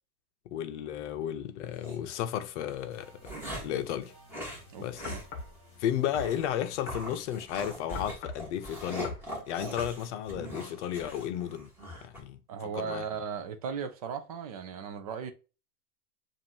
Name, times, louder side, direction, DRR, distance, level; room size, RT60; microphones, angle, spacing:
voice 1, 0.5-3.1 3.6-4.1 4.8-5.1 5.8-9.2 9.5-11.7 12.0-13.1, left 10 dB, 45° left, 0.7 m, -33 dB
sound 1, 1.7-2.0 2.7-3.8 4.3-4.6 5.0-5.3 5.6-5.7 6.1-6.4 6.9-12.2, equal, 5° right, 1.6 m, -41 dB
sound 2, 2.9-8.1, right 1 dB, 10° left, 2.0 m, -56 dB
voice 2, 4.7-5.2 12.5-15.3, right 6 dB, 30° right, 0.3 m, -37 dB
sound 3, 5.0-5.6 6.1-6.4 6.9-7.1 7.9-8.5 9.0-9.3 9.8-10.0, left 3 dB, 30° left, 1.0 m, -40 dB
7.1 x 2.6 x 2.8 m
hypercardioid pair, 140°, 47 cm